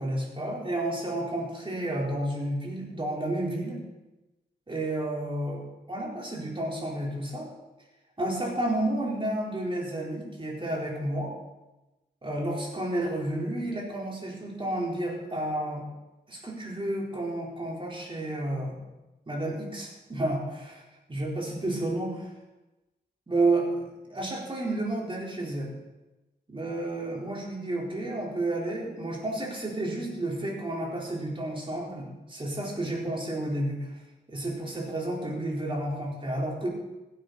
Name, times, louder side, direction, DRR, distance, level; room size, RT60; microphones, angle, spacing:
voice 1, 0.0-3.8 4.7-5.6 5.9-7.5 8.2-11.3 12.2-15.8 16.3-18.8 19.3-20.8 21.1-22.2 23.3-25.7 26.5-33.9 34.3-36.7, right 1 dB, 30° right, -2 dB, 4.0 m, -31 dB
15.5 x 9.3 x 4.1 m, 1.1 s
cardioid pair, 65°, 18 cm